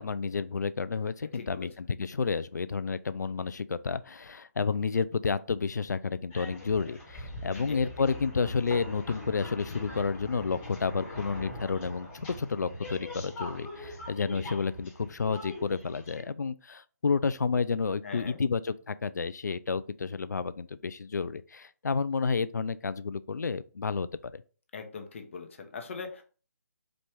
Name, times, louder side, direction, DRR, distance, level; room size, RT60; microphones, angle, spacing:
voice 1, 0.0-24.4, left 5 dB, 75° left, 0.4 m, -30 dB
voice 2, 1.3-1.7 7.4-7.8 18.0-18.4 24.7-26.2, left 5 dB, 45° left, 0.8 m, -41 dB
sound 1, 6.3-16.2, left 1 dB, 20° left, 1.3 m, -42 dB
4.4 x 2.5 x 3.5 m
figure-of-eight pair, 150°, 9 cm